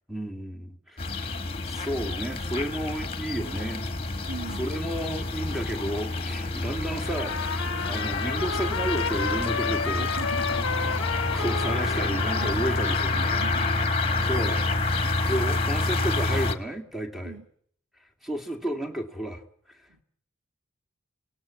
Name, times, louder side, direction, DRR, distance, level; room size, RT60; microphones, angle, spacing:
voice 1, 0.1-3.9 4.6-10.1 10.7-13.4 14.3-14.6 14.9-17.4 18.2-19.4 19.7-20.0, right 1 dB, ahead, 2 dB, 2.0 m, -32 dB
sound 1, 1.0-16.6, left 2 dB, 25° left, 1.6 m, -28 dB
voice 2, 4.3-4.6 10.0-10.7 12.1-12.8 13.1-13.7 17.2-17.5 19.9-20.0, right 4 dB, 85° right, 7 dB, 1.7 m, -41 dB
Trumpet, 7.0-13.8, left 5 dB, 60° left, 0.9 m, -32 dB
27.0 x 18.0 x 8.7 m, 0.67 s
head